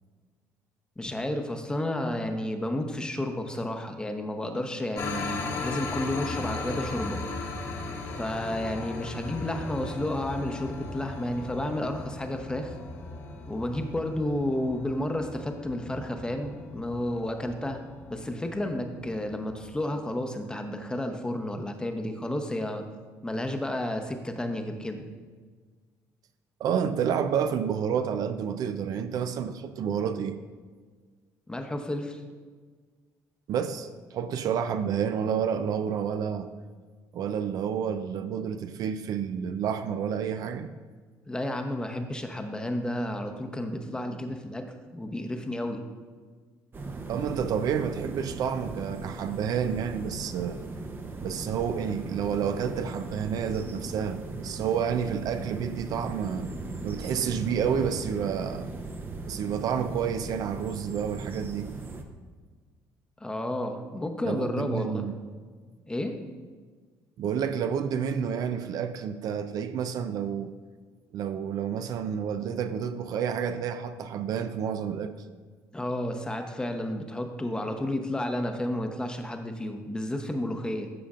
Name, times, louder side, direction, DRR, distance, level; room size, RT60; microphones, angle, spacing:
voice 1, 1.0-7.2 8.2-12.7 13.5-17.8 18.1-22.8 23.2-25.0 31.5-32.2 41.3-45.8 63.2-65.1 65.9-66.2 75.7-80.9, left 1 dB, 10° left, 5 dB, 0.8 m, -31 dB
sound 1, 4.9-19.8, left 3 dB, 50° left, 1.2 m, -37 dB
voice 2, 26.6-30.4 33.5-36.5 37.1-40.7 47.1-50.6 51.2-56.5 56.8-58.7 59.2-61.7 64.3-65.1 67.2-70.5 71.1-75.1, right 7 dB, 65° right, 10 dB, 0.4 m, -29 dB
sound 2, 46.7-62.0, right 3 dB, 30° right, 0.7 m, -38 dB
12.5 x 5.1 x 2.5 m, 1.5 s
cardioid pair, 90°, 7 cm